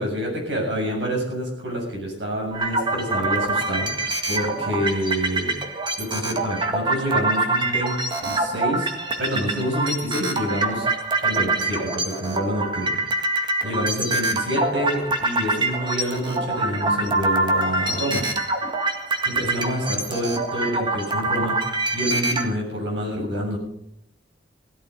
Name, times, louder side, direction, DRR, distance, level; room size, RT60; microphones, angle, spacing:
voice 1, 0.0-5.6 6.0-10.9 11.2-18.3 19.2-21.6 21.9-23.6, equal, 80° right, -1 dB, 7.3 m, -27 dB
sound 1, 2.5-22.4, right 2 dB, 25° right, 1.9 m, -25 dB
17.0 x 13.0 x 5.4 m, 0.73 s
head